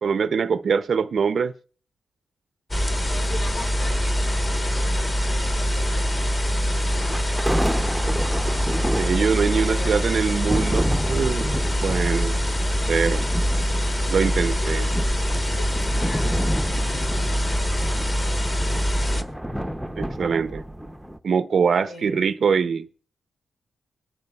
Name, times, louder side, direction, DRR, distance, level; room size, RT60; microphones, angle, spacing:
voice 1, 0.0-1.5 9.0-12.4 12.9-13.2 14.1-14.8 20.0-20.6 21.2-22.9, right 6 dB, 55° right, 0.4 m, -23 dB
sound 1, 2.7-19.2, equal, 20° left, 1.1 m, -24 dB
voice 2, 3.0-4.2 4.5-6.2 6.9-7.2 9.4-10.2 14.5-15.1 15.5-18.4 21.8-22.3, left 3 dB, 70° left, 4.7 m, -40 dB
sound 2, 3.3-9.0, left 1 dB, 45° left, 2.1 m, -44 dB
sound 3, 6.9-21.2, equal, ahead, 0.6 m, -31 dB
22.0 x 10.5 x 2.3 m
wide cardioid pair, 120°, 0 cm